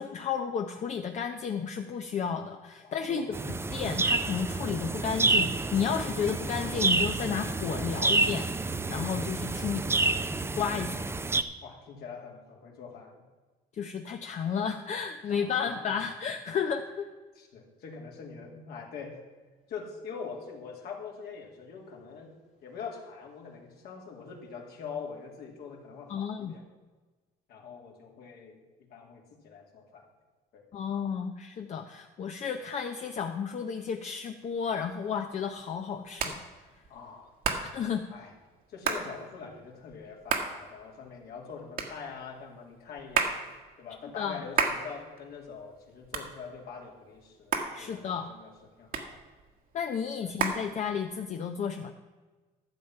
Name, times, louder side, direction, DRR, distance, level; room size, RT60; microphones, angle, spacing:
voice 1, 0.0-3.3 3.7-10.1 10.6-11.0 13.7-17.1 26.1-26.5 30.7-36.4 37.7-38.0 44.2-44.4 47.7-48.3 49.7-51.9, left 7 dB, 45° left, 5 dB, 0.7 m, -32 dB
voice 2, 2.8-3.4 11.6-13.2 15.3-16.1 17.3-19.2 19.7-22.3 22.6-26.6 27.5-28.6 28.9-30.1 30.5-30.6 36.9-37.6 38.1-38.3 38.7-43.5 43.8-48.5 48.8-49.2 50.2-50.4, left 5 dB, 70° left, 0 dB, 2.3 m, -44 dB
sound 1, 3.3-11.4, right 3 dB, 15° right, 0.5 m, -29 dB
Hands, 34.7-51.4, right 5 dB, 60° right, 1.5 m, -35 dB
12.0 x 7.3 x 5.7 m, 1.3 s
cardioid pair, 110°, 17 cm